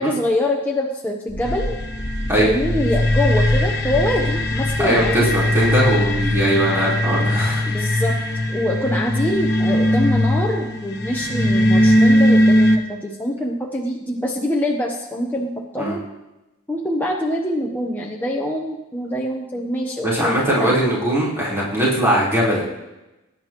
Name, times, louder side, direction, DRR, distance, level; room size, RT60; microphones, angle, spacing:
voice 1, 0.0-1.8 2.4-5.3 7.7-8.2 8.5-16.0 16.7-20.8, left 1 dB, 10° left, -2 dB, 0.9 m, -24 dB
sound 1, 1.3-6.5, left 1 dB, 85° left, 1.1 m, -29 dB
sound 2, 1.4-12.8, left 1 dB, 50° left, 1.1 m, -19 dB
voice 2, 4.8-7.6 15.8-16.0 20.0-22.7, right 1 dB, 10° right, -7 dB, 3.9 m, -20 dB
19.5 x 10.0 x 3.0 m, 1.0 s
head